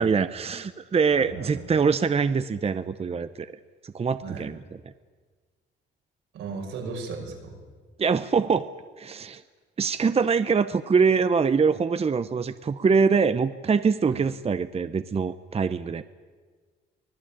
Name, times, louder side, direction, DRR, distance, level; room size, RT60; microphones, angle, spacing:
voice 1, 0.0-3.6 3.8-4.6 8.0-8.7 9.0-9.4 9.8-16.0, right 5 dB, 30° right, 12 dB, 0.8 m, -24 dB
voice 2, 1.2-1.6 4.2-4.5 6.3-7.5 14.1-14.2, right 4 dB, 85° right, 1 dB, 6.3 m, -36 dB
24.5 x 18.0 x 8.9 m, 1.5 s
cardioid pair, 90°, 20 cm